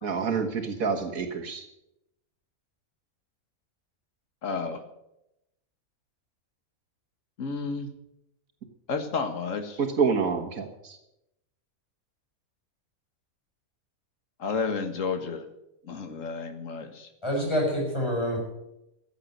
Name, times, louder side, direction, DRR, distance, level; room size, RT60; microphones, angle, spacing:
voice 1, 0.0-1.7 9.8-11.0, right 5 dB, 75° right, 3 dB, 1.9 m, -27 dB
voice 2, 4.4-4.8 7.4-7.9 8.9-9.8 14.4-15.4 15.9-17.1, left 4 dB, 65° left, 7 dB, 1.9 m, -31 dB
voice 3, 17.2-18.4, equal, 20° left, -2 dB, 6.5 m, -26 dB
14.5 x 7.9 x 9.1 m, 0.86 s
omnidirectional pair, 1.5 m